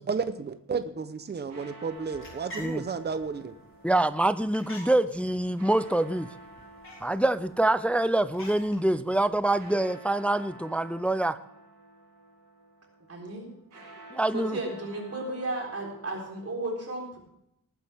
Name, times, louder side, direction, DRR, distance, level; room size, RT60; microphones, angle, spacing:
voice 1, 0.1-3.6, right 5 dB, 30° right, 10 dB, 0.7 m, -32 dB
sound 1, 1.2-16.5, right 2 dB, 70° right, 5.3 m, -51 dB
sound 2, 1.9-9.7, equal, 40° left, 4.3 m, -49 dB
voice 2, 3.8-6.3 7.0-11.4 14.1-14.6, right 1 dB, 5° left, 13 dB, 0.3 m, -25 dB
voice 3, 13.1-13.5 14.3-17.2, right 2 dB, 45° right, -1 dB, 3.8 m, -34 dB
19.0 x 9.5 x 3.5 m, 0.77 s
wide cardioid pair, 170°, 33 cm